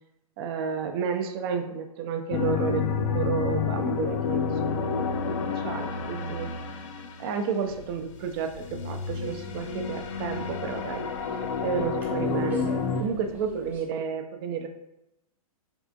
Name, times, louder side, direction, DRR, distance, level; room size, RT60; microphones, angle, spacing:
voice 1, 0.4-6.5 7.2-11.1 11.6-12.7 13.0-14.7, right 6 dB, 40° right, 6 dB, 0.4 m, -31 dB
sound 1, 2.3-7.6 8.6-13.0, left 6 dB, 55° left, 0.4 m, -29 dB
sound 2, 7.7-13.8, equal, 10° right, 0.7 m, -45 dB
3.5 x 2.4 x 2.5 m, 0.90 s
figure-of-eight pair, 110°, 19 cm